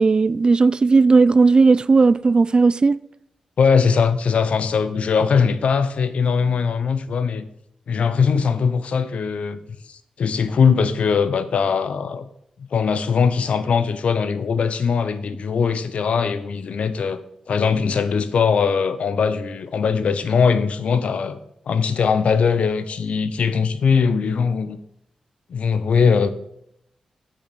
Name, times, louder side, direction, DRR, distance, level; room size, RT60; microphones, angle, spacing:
voice 1, 0.0-2.9, right 4 dB, 45° right, 0.4 m, -15 dB
voice 2, 3.6-7.5 7.9-9.6 9.9-12.3 12.7-17.2 17.5-21.4 21.7-24.8 25.5-26.3, left 6 dB, 75° left, 0.7 m, -20 dB
8.1 x 6.4 x 5.9 m
supercardioid pair, 45°, 2 cm